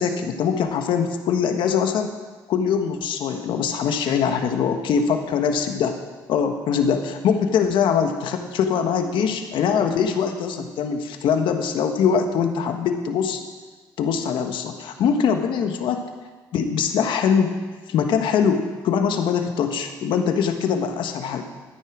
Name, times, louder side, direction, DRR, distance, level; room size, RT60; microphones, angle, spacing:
voice 1, 0.0-2.1 2.5-5.9 6.3-13.4 14.0-16.0 16.5-17.5 17.9-21.4, left 7 dB, 70° left, 6 dB, 1.3 m, -22 dB
13.0 x 9.7 x 5.0 m, 1.4 s
supercardioid pair, 75°, 9 cm